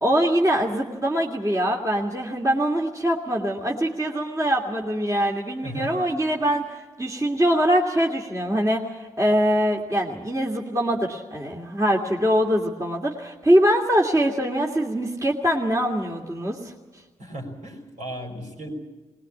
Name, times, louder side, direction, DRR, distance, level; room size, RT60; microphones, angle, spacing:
voice 1, 0.0-16.6, equal, 25° right, -1 dB, 2.6 m, -23 dB
voice 2, 5.6-6.0 17.2-18.7, right 1 dB, 65° right, 0 dB, 5.5 m, -35 dB
20.5 x 18.5 x 8.7 m, 1.3 s
supercardioid pair, 45°, 14 cm